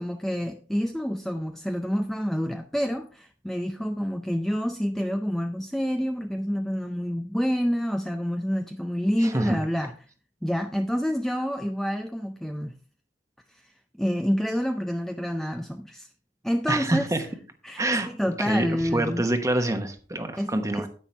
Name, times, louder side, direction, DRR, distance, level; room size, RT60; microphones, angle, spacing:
voice 1, 0.0-9.9 10.4-12.7 13.5-16.1 16.4-17.3 17.6-19.2 20.4-20.9, equal, ahead, 0.4 m, -28 dB
voice 2, 16.7-17.2 17.8-18.1 18.4-20.9, right 1 dB, 15° right, 1.1 m, -26 dB
10.0 x 9.1 x 3.3 m
head